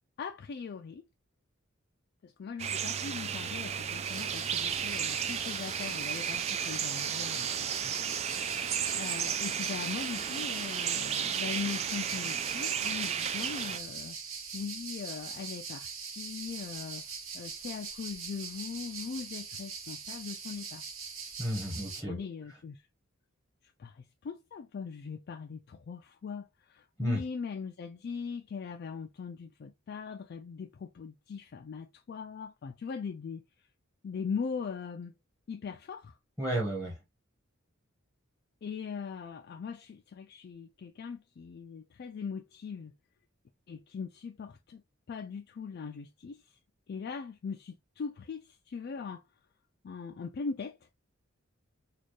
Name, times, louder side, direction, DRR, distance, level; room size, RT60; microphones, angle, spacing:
voice 1, 0.2-1.1 2.2-8.2 8.9-14.2 14.5-20.8 21.8-22.9 23.6-33.4 34.0-35.1 35.5-36.2 38.6-42.9 43.7-44.8 45.1-46.6 46.9-49.2 49.8-50.8, left 5 dB, 50° left, 0.3 m, -40 dB
sound 1, 2.6-13.8, right 8 dB, 30° right, 0.3 m, -33 dB
sound 2, 4.0-22.0, right 5 dB, 70° right, 1.2 m, -42 dB
voice 2, 21.4-22.2 27.0-27.2 36.4-37.0, equal, 5° right, 1.1 m, -32 dB
4.2 x 2.4 x 3.0 m
head